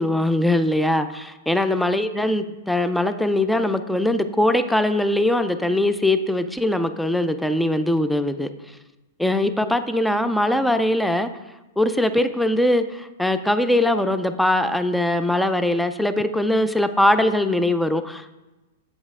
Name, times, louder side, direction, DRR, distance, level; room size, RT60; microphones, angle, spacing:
voice 1, 0.0-8.5 9.2-11.3 11.8-18.4, left 1 dB, ahead, 10 dB, 0.4 m, -21 dB
7.8 x 5.3 x 3.6 m, 1.1 s
hypercardioid pair, 130°, 0 cm